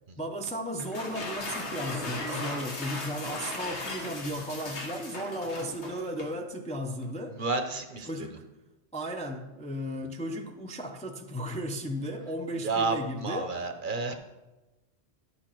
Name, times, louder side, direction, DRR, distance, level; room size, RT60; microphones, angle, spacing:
voice 1, 0.2-7.4 8.0-8.4 8.9-13.6, equal, 10° left, 0.5 m, -35 dB
sound 1, 0.8-6.4, left 2 dB, 80° left, 1.5 m, -37 dB
voice 2, 7.4-8.1 12.6-13.0 13.2-14.1, right 3 dB, 50° right, 0.9 m, -30 dB
10.5 x 6.9 x 4.5 m
omnidirectional pair, 1.2 m